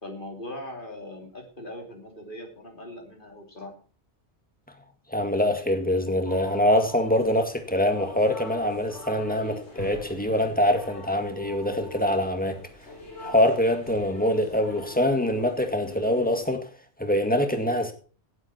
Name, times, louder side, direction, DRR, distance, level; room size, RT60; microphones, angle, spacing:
voice 1, 0.0-3.7, left 1 dB, 50° left, 3.2 m, -40 dB
voice 2, 5.1-12.6 13.2-16.7 17.0-17.9, left 1 dB, 10° left, 1.9 m, -24 dB
sound 1, 6.2-16.5, left 1 dB, 85° left, 5.2 m, -42 dB
17.5 x 8.2 x 4.4 m
omnidirectional pair, 1.1 m